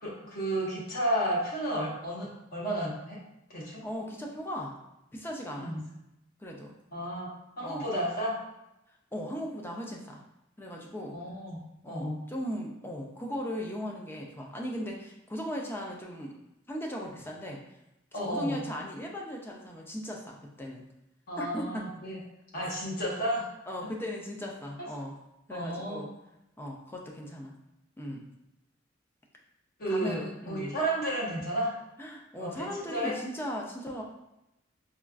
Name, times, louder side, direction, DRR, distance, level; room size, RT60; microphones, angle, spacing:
voice 1, 0.0-3.2 3.5-3.8 5.6-5.8 6.9-7.3 7.6-8.4 11.1-11.6 11.9-12.2 18.1-18.7 21.3-22.2 22.5-23.5 25.5-26.0 29.8-31.8 32.4-33.2, right 1 dB, 50° left, -5 dB, 1.0 m, -32 dB
voice 2, 3.8-4.8 5.1-5.8 6.4-6.7 7.6-7.9 9.1-10.2 10.6-11.2 11.8-16.4 16.7-17.6 18.1-20.8 21.4-21.9 22.6-22.8 23.7-25.2 25.5-26.1 26.6-27.5 28.0-28.3 29.9-30.8 32.0-34.0, equal, 10° left, -1 dB, 0.4 m, -37 dB
4.2 x 2.3 x 2.4 m, 0.89 s
head